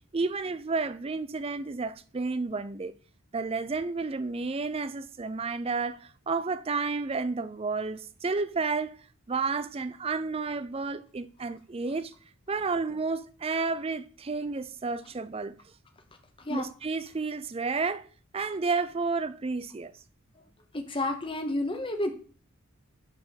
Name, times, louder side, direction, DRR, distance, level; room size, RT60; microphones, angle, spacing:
voice 1, 0.1-2.9 3.3-9.0 9.3-12.1 12.5-15.6 16.5-18.1 18.3-19.9, right 4 dB, 25° right, 0.4 m, -31 dB
voice 2, 20.7-22.1, left 1 dB, 25° left, 0.9 m, -30 dB
10.5 x 3.7 x 4.1 m
head